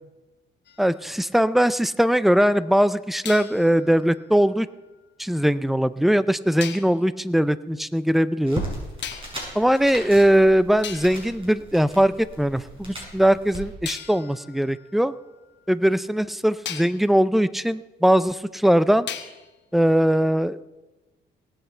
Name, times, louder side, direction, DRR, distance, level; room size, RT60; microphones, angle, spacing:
sound 1, 0.6-2.1 3.2-5.4 6.6-7.0 9.0-9.6 10.3-10.4 10.8-12.5 13.8-16.0 16.6-17.1 19.1-19.6, left 8 dB, 65° left, 1.2 m, -40 dB
voice 1, 0.8-4.7 5.2-8.6 9.5-15.1 15.7-19.1 19.7-20.6, equal, ahead, 16 dB, 0.4 m, -20 dB
sound 2, 8.4-13.6, right 1 dB, 25° right, 5.5 m, -37 dB
18.5 x 8.2 x 4.4 m, 1.1 s
cardioid pair, 90°, 20 cm